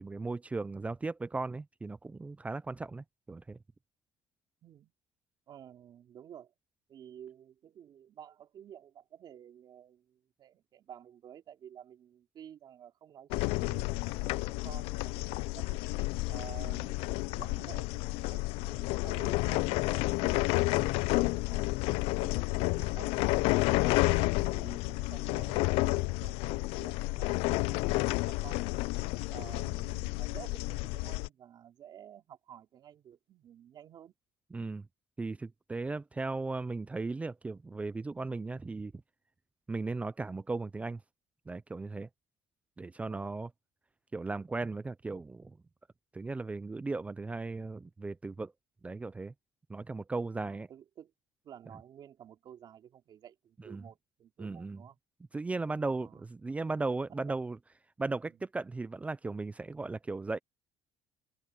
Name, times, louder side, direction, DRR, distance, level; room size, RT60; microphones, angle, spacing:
voice 1, 0.0-3.6 34.5-34.9 35.2-38.9 39.7-41.0 41.5-42.1 42.8-43.5 44.1-45.6 46.1-48.5 48.8-49.3 49.7-50.7 53.6-53.8 54.4-54.8 55.3-57.6 58.0-60.4, right 3 dB, 15° right, 0.4 m, -36 dB
voice 2, 4.6-4.9 5.5-6.5 6.9-15.8 16.3-21.8 22.2-28.9 29.3-34.1 43.1-43.3 50.3-51.1 51.4-55.0 55.9-56.2 57.1-57.4 58.2-58.4, right 9 dB, 45° right, 3.2 m, -52 dB
sound 1, 13.3-31.3, left 23 dB, 85° left, 0.4 m, -30 dB
open air
cardioid pair, 135°, 10 cm